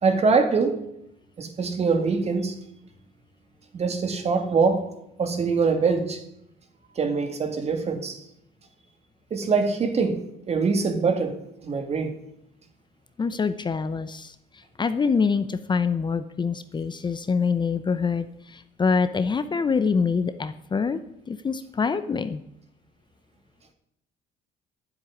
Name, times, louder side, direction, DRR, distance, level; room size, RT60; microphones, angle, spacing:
voice 1, 0.0-0.8 1.4-2.5 3.7-4.8 5.2-6.2 7.0-8.2 9.3-10.2 10.5-11.4 11.6-12.1, right 4 dB, 40° right, 6 dB, 2.3 m, -23 dB
voice 2, 13.2-21.0 21.3-22.4, left 5 dB, 25° left, 12 dB, 0.7 m, -25 dB
10.5 x 7.7 x 9.8 m, 0.79 s
cardioid pair, 110°, 17 cm